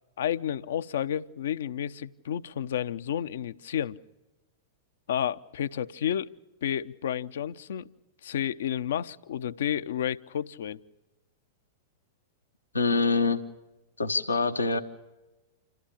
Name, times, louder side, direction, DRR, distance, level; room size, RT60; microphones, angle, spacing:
voice 1, 0.2-4.0 5.1-6.3 6.6-7.9 8.2-10.8, left 9 dB, 65° left, 14 dB, 0.6 m, -31 dB
voice 2, 12.7-13.4 14.0-14.8, left 4 dB, 90° left, 7 dB, 1.1 m, -25 dB
27.5 x 14.5 x 8.8 m, 1.1 s
figure-of-eight pair, 100°, 0 cm